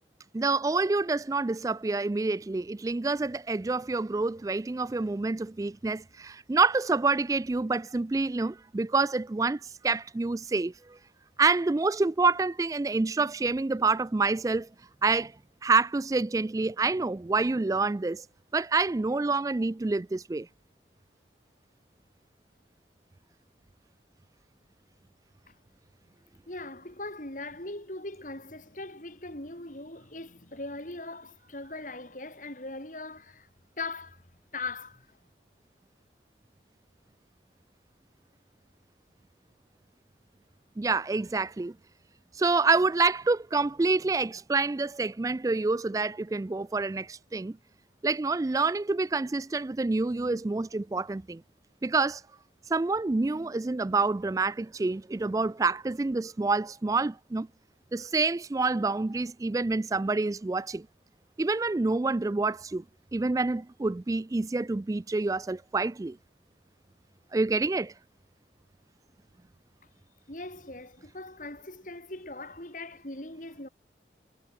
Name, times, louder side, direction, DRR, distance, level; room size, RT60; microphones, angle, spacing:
voice 1, 0.3-11.0 11.4-14.7 15.0-15.3 15.6-18.3 18.5-20.5 40.8-41.7 42.3-47.5 48.0-51.4 51.8-52.2 52.7-57.5 57.9-60.9 61.4-62.8 63.1-66.2 67.3-67.9, right 3 dB, 20° right, 0.3 m, -27 dB
voice 2, 26.5-33.5 33.8-34.2 34.5-35.2 70.3-73.7, left 2 dB, 45° left, 4.9 m, -40 dB
head